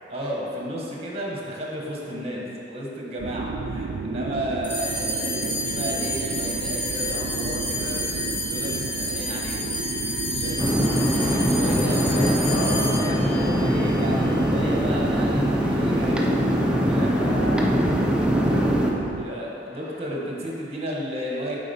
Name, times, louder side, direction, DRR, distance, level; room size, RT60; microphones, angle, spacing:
voice 1, 0.1-9.7 10.0-10.7 11.1-12.7 12.9-17.2 18.2-18.5 19.1-21.6, equal, 35° right, -3 dB, 1.2 m, -33 dB
voice 2, 2.1-2.6 11.9-13.0 17.1-19.2 19.7-20.0, left 1 dB, 90° left, -4 dB, 0.9 m, -36 dB
sound 1, 3.2-19.2, right 3 dB, 75° right, 0.4 m, -32 dB
sound 2, 4.6-15.3, equal, 10° left, 1.0 m, -30 dB
sound 3, 10.6-18.9, equal, 5° right, 0.5 m, -22 dB
8.6 x 3.8 x 4.2 m, 2.8 s
head